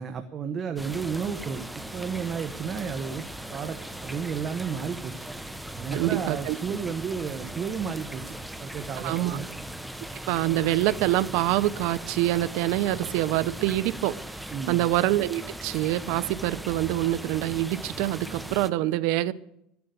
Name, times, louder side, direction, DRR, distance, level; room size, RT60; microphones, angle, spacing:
voice 1, 0.0-1.6 1.9-3.2 3.5-5.3 5.8-9.5 14.5-14.9, right 6 dB, 30° right, 1.1 m, -32 dB
sound 1, 0.8-18.7, right 1 dB, 5° right, 0.8 m, -39 dB
voice 2, 5.9-6.6 9.0-9.4 10.3-14.2 14.7-19.3, right 15 dB, 65° right, 0.7 m, -25 dB
13.5 x 10.5 x 8.0 m
supercardioid pair, 140°, 0 cm